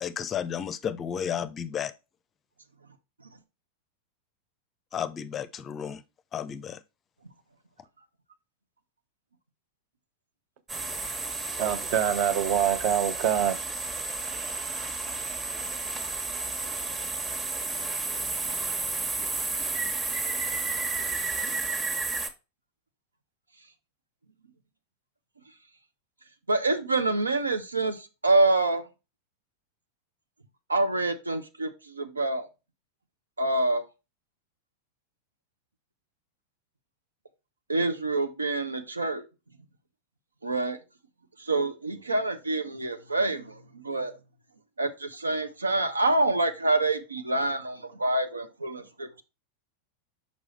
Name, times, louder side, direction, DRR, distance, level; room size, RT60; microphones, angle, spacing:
voice 1, 0.0-1.9 4.9-6.0 6.3-6.8, left 8 dB, 25° left, 0.5 m, -32 dB
sound 1, 10.7-22.3, right 3 dB, 20° right, 1.2 m, -32 dB
voice 2, 11.6-13.6, right 10 dB, 45° right, 0.9 m, -25 dB
voice 3, 26.5-28.9 30.7-32.5 33.4-33.8 37.7-39.2 40.4-40.8 41.4-44.1 44.8-49.2, right 2 dB, 80° right, 0.9 m, -26 dB
6.2 x 5.3 x 3.1 m
figure-of-eight pair, 90°, 0 cm